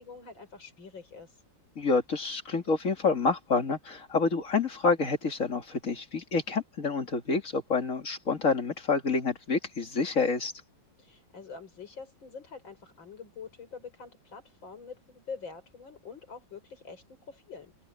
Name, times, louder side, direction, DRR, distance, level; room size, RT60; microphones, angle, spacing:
voice 1, 0.0-1.3 11.0-17.8, left 5 dB, 85° left, 5.9 m, -45 dB
voice 2, 1.8-10.5, left 4 dB, 45° left, 2.5 m, -28 dB
open air
omnidirectional pair, 2.1 m